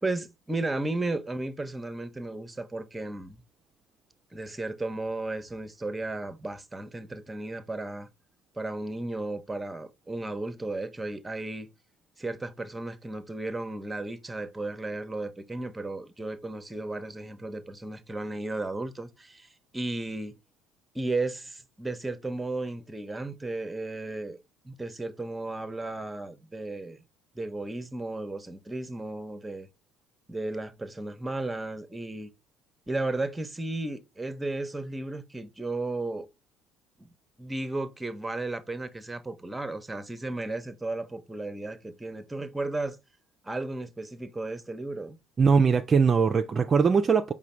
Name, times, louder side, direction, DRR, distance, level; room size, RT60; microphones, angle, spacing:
voice 1, 0.0-3.4 4.3-8.1 8.6-11.7 12.2-20.4 20.9-24.4 24.6-27.0 27.3-29.7 30.3-32.3 32.9-36.3 37.0-37.1 37.4-43.0 43.4-45.2, right 2 dB, 15° right, 0.7 m, -34 dB
voice 2, 45.4-47.3, right 5 dB, 35° right, 0.3 m, -21 dB
4.9 x 2.1 x 4.2 m
hypercardioid pair, 60°, 0 cm